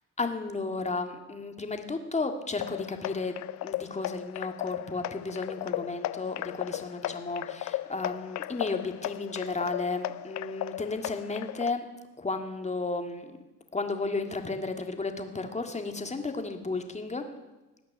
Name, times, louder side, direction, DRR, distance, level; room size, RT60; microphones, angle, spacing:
voice 1, 0.2-11.9 12.2-13.4 13.7-17.2, left 3 dB, 20° left, 6 dB, 1.9 m, -33 dB
sound 1, 2.6-11.7, left 15 dB, 70° left, 0.5 m, -36 dB
18.5 x 6.5 x 10.0 m, 1.1 s
cardioid pair, 90°, 30 cm